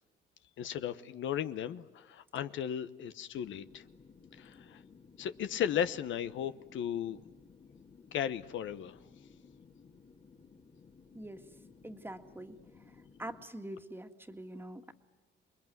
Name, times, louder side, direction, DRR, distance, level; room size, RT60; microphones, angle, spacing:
voice 1, 0.6-3.8 4.3-4.8 5.2-7.2 8.1-9.0, left 9 dB, 75° left, 12 dB, 0.9 m, -35 dB
sound 1, 3.3-13.5, left 5 dB, 40° left, 1.9 m, -58 dB
voice 2, 11.8-12.6 13.2-14.9, right 1 dB, 10° right, 6 dB, 1.9 m, -44 dB
28.5 x 21.0 x 9.3 m, 1.2 s
cardioid pair, 90°, 20 cm